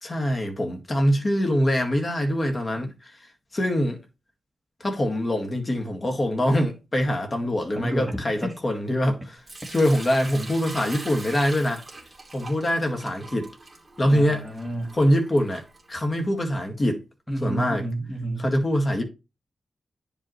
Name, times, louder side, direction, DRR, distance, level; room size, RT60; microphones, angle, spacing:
voice 1, 0.0-3.1 3.5-4.0 4.8-9.4 9.7-11.8 12.3-13.5 14.0-14.5 14.9-15.6 15.9-17.0 17.4-17.8 18.4-19.0, equal, 30° left, 1.9 m, -24 dB
voice 2, 7.7-8.5 14.1-15.0 17.3-18.5, right 1 dB, 5° left, 1.7 m, -30 dB
Sink (filling or washing) / Liquid, 9.5-16.4, right 2 dB, 20° right, 2.6 m, -42 dB
9.7 x 5.2 x 3.2 m
wide cardioid pair, 130°, 0 cm